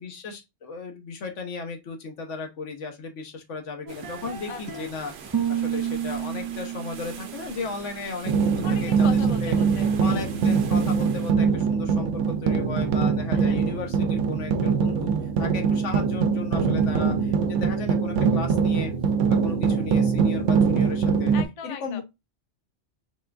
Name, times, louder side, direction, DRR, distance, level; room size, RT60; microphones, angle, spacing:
voice 1, 0.0-5.1 5.5-9.1 9.4-9.5 10.0-15.1 15.4-18.9 19.3-21.3 21.6-22.0, left 4 dB, 85° left, 1.3 m, -35 dB
sound 1, 3.9-4.9 5.2-8.2, right 9 dB, 30° right, 0.3 m, -31 dB
sound 2, 3.9-11.3, right 6 dB, 65° right, 0.9 m, -44 dB
voice 2, 4.5-4.9 8.6-10.2 13.3-13.6 21.3-22.0, left 7 dB, 45° left, 0.4 m, -39 dB
sound 3, 8.2-21.4, right 5 dB, 90° right, 0.9 m, -23 dB
4.3 x 3.3 x 2.4 m
omnidirectional pair, 1.2 m